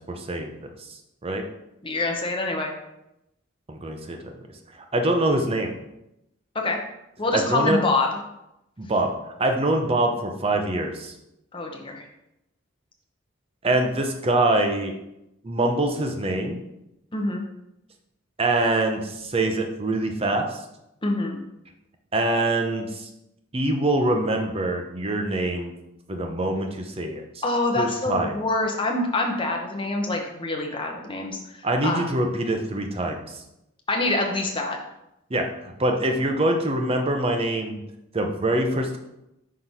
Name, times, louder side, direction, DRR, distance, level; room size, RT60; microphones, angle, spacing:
voice 1, 0.1-1.4 3.7-4.2 4.7-5.7 7.3-7.8 8.8-9.1 9.4-11.1 13.6-14.9 15.4-16.6 18.4-20.6 22.1-23.1 23.5-25.7 26.1-27.4 27.8-28.4 31.6-33.4 35.3-37.8 38.1-39.0, right 2 dB, 30° right, 4 dB, 0.7 m, -24 dB
voice 2, 1.8-2.7 6.5-6.8 7.2-8.2 11.5-12.0 17.1-17.4 21.0-21.4 27.4-32.1 33.9-34.8, left 2 dB, 25° left, 1 dB, 0.9 m, -26 dB
5.7 x 3.2 x 5.4 m, 0.87 s
head